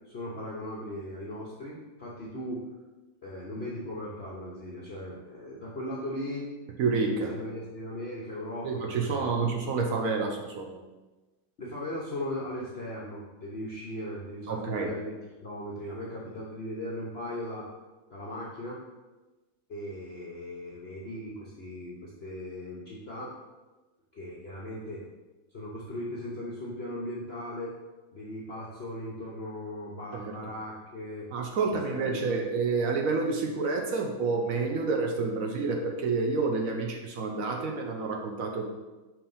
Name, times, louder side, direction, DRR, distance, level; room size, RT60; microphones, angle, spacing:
voice 1, 0.0-2.6 3.2-6.5 7.3-9.3 11.6-15.2 15.4-17.7 18.1-18.8 19.7-23.4 24.1-25.0 25.5-27.7 28.1-31.3 31.9-32.5, left 1 dB, 60° left, -5 dB, 0.6 m, -38 dB
voice 2, 6.8-7.3 8.6-10.8 14.5-14.9 30.1-30.3 31.3-38.6, right 4 dB, 75° right, 2 dB, 0.7 m, -29 dB
5.8 x 3.3 x 5.4 m, 1.2 s
omnidirectional pair, 2.3 m